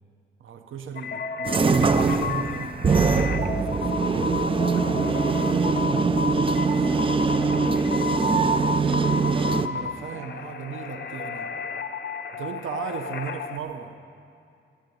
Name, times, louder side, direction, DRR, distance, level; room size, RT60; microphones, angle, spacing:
voice 1, 0.4-4.6 9.1-11.5 12.3-14.0, right 6 dB, 85° right, 6 dB, 0.9 m, -37 dB
sound 1, 1.0-13.6, left 5 dB, 55° left, 0.9 m, -32 dB
sound 2, 1.5-9.7, right 4 dB, 25° right, 0.5 m, -22 dB
voice 2, 4.5-9.0, equal, 5° right, -6 dB, 4.1 m, -41 dB
15.0 x 8.9 x 9.2 m, 2.5 s
wide cardioid pair, 140°, 20 cm